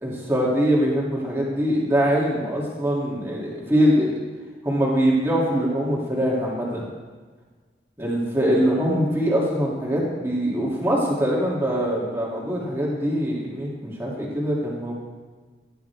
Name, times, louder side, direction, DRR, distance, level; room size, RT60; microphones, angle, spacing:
voice 1, 0.0-4.1 4.6-6.8 8.0-14.9, equal, 15° right, -5 dB, 2.7 m, -23 dB
16.5 x 10.5 x 3.5 m, 1.4 s
head